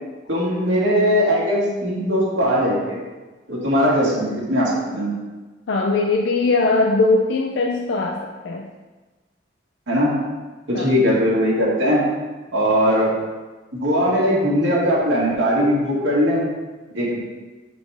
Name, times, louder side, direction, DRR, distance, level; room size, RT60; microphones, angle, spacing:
voice 1, 0.3-3.0 3.5-5.1 9.9-10.1 10.7-12.1 12.5-13.1 13.8-16.5 16.9-17.2, equal, 90° right, -6 dB, 1.9 m, -19 dB
voice 2, 5.7-8.7 10.7-10.9, left 3 dB, 70° left, 1 dB, 0.4 m, -20 dB
7.0 x 4.2 x 3.4 m, 1.2 s
head